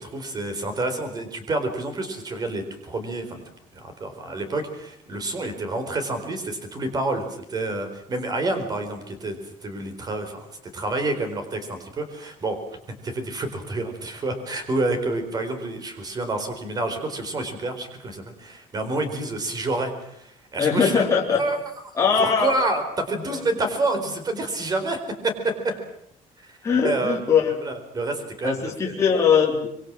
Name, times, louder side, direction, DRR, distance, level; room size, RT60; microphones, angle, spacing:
voice 1, 0.0-3.4 3.7-10.5 10.7-12.6 13.0-21.0 21.4-21.6 22.2-25.7 26.4-26.6 26.8-27.2 27.6-29.0, right 2 dB, 30° right, 8 dB, 4.4 m, -28 dB
voice 2, 20.6-21.4 22.0-22.5 23.3-23.4 26.6-27.5 28.4-29.7, left 6 dB, 20° left, -3 dB, 3.6 m, -20 dB
25.0 x 24.0 x 7.6 m, 0.73 s
cardioid pair, 170°, 14 cm